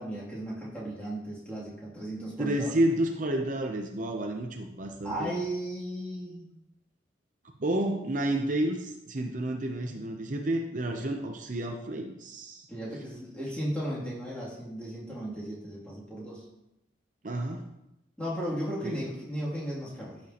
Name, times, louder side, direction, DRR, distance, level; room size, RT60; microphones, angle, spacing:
voice 1, 0.0-2.8 5.0-6.5 12.7-16.4 18.2-20.2, right 1 dB, 5° left, -7 dB, 2.7 m, -35 dB
voice 2, 2.4-5.3 7.6-12.7 17.2-17.6 18.8-19.0, right 1 dB, 50° right, 3 dB, 0.7 m, -30 dB
14.0 x 6.0 x 2.9 m, 0.88 s
head